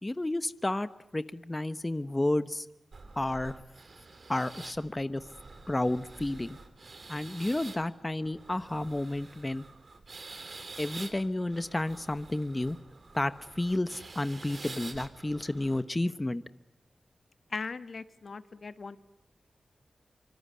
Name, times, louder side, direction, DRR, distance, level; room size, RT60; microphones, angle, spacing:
voice 1, 0.0-2.6 3.2-3.5 4.3-5.2 5.7-6.6 7.1-9.6 10.8-12.8 13.1-16.4, left 1 dB, 25° left, 12 dB, 1.0 m, -31 dB
sound 1, 2.9-15.8, right 3 dB, 60° right, 3.8 m, -48 dB
voice 2, 17.5-19.0, left 4 dB, 65° left, 11 dB, 1.3 m, -39 dB
25.5 x 24.5 x 9.6 m, 0.80 s
cardioid pair, 60°, 0 cm